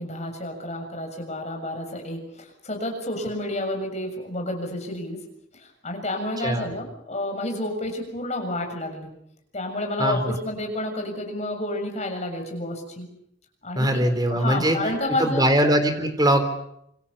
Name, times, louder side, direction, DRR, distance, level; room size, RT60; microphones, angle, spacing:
voice 1, 0.0-5.2 5.5-9.1 9.5-13.1 13.6-15.5, left 1 dB, 35° left, 3 dB, 7.0 m, -30 dB
voice 2, 6.4-6.7 10.0-10.3 13.8-14.8 15.2-16.4, right 1 dB, 20° right, 7 dB, 3.8 m, -21 dB
27.0 x 26.0 x 7.1 m, 0.76 s
head